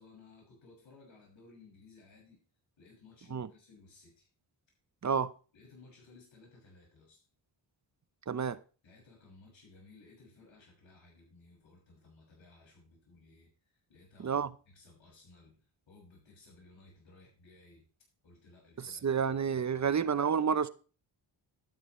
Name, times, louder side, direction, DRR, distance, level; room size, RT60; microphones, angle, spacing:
voice 1, 0.0-2.4 2.8-4.3 5.5-7.2 8.8-17.9 18.2-20.0, left 3 dB, 75° left, 6.6 m, -59 dB
voice 2, 8.3-8.6 14.2-14.5 18.8-20.7, right 6 dB, 40° right, 0.8 m, -30 dB
11.5 x 10.5 x 3.2 m
cardioid pair, 75°, 46 cm